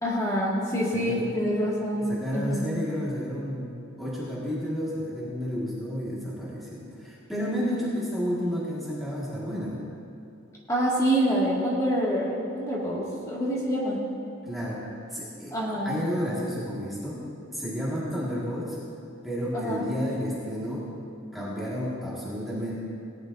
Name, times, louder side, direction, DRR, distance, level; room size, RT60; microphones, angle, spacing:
voice 1, 0.0-2.7 7.7-7.9 10.7-14.0 15.5-16.0 19.5-19.8, equal, 15° left, -6 dB, 1.9 m, -26 dB
voice 2, 0.9-1.3 2.0-9.8 14.4-15.6 15.8-18.8 19.2-20.9 21.3-22.7, equal, ahead, -8 dB, 1.7 m, -31 dB
18.5 x 10.5 x 2.6 m, 2.7 s
head